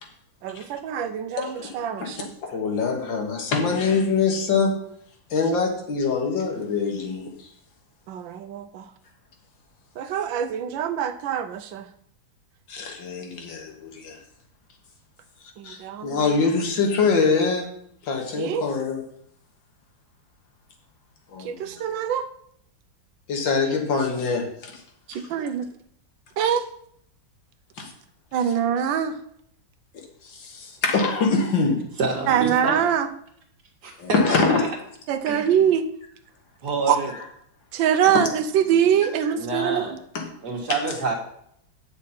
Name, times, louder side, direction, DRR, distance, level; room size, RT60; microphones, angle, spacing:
voice 1, 0.4-2.3 8.1-8.9 10.0-11.9 15.6-16.3 18.4-18.7 21.4-22.3 25.1-25.7 26.4-26.6 28.3-29.2 32.3-33.1 35.1-35.9 36.9-37.0 37.7-40.0, right 9 dB, 80° right, 8 dB, 1.4 m, -24 dB
voice 2, 1.4-1.7 2.0-4.7 5.3-7.5 12.7-14.2 15.6-17.7 18.0-19.0 21.3-21.8 23.3-24.8 25.1-25.2 27.8-27.9 29.9-31.8 34.0-34.6 38.0-38.2 40.1-40.2, left 4 dB, 75° left, 2 dB, 2.1 m, -24 dB
voice 3, 32.0-32.7 33.8-34.7 35.3-35.5 36.6-37.1 38.2-38.3 39.3-39.9 40.4-41.2, right 3 dB, 60° right, 2 dB, 2.0 m, -27 dB
8.9 x 6.2 x 4.3 m, 0.68 s
omnidirectional pair, 2.1 m